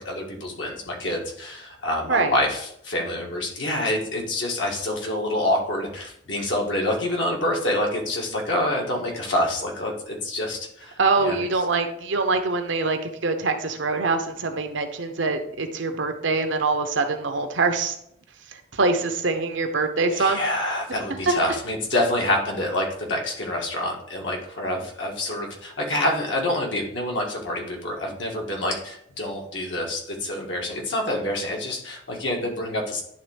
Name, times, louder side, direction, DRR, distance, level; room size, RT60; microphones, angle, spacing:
voice 1, 0.1-11.4 20.1-33.0, left 1 dB, 75° left, 0 dB, 1.8 m, -27 dB
voice 2, 11.0-17.9 18.7-20.4 21.3-21.4, right 3 dB, 75° right, 6 dB, 0.9 m, -24 dB
10.5 x 3.6 x 3.4 m, 0.71 s
head